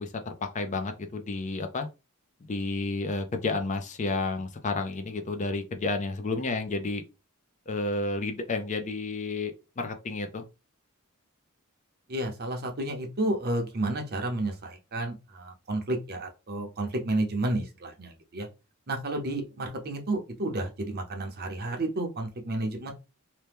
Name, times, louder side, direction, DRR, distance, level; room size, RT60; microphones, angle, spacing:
voice 1, 0.0-1.9 2.5-7.0 7.7-10.4, left 3 dB, 35° left, 0.5 m, -31 dB
voice 2, 12.1-18.5 18.9-22.9, right 1 dB, 45° right, 0.7 m, -31 dB
2.9 x 2.1 x 3.4 m
head